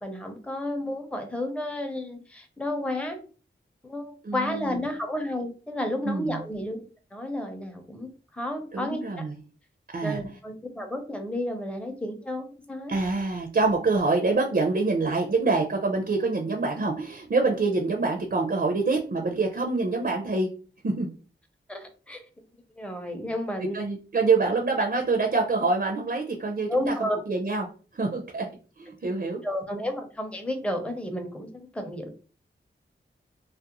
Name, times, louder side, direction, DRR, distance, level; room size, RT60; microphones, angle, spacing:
voice 1, 0.0-3.2 3.8-6.8 7.1-9.0 10.0-13.0 21.7-22.2 22.8-23.8 26.7-27.2 29.4-32.1, left 1 dB, 5° left, 5 dB, 0.6 m, -32 dB
voice 2, 4.2-4.8 6.0-6.4 8.7-9.4 9.9-10.2 12.9-20.5 20.8-21.1 23.7-27.7 27.9-28.5 28.8-29.4, right 3 dB, 50° right, 2 dB, 0.5 m, -26 dB
2.4 x 2.0 x 2.8 m, 0.37 s
wide cardioid pair, 60°, 21 cm